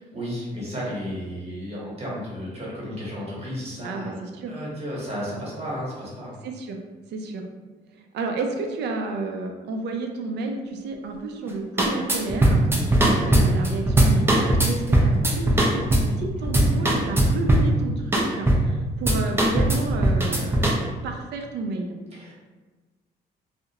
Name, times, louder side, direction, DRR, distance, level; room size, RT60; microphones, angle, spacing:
voice 1, 0.1-6.4 22.1-22.3, equal, 35° right, -6 dB, 1.1 m, -33 dB
voice 2, 3.8-4.5 6.4-6.8 7.1-7.4 7.9-22.0, right 3 dB, 75° right, 3 dB, 0.4 m, -31 dB
sound 1, 11.5-11.6 11.8-16.2 16.4-17.7 18.1-18.8 19.1-20.8, right 1 dB, 15° right, 0.4 m, -19 dB
2.4 x 2.0 x 2.7 m, 1.3 s
cardioid pair, 80°, 18 cm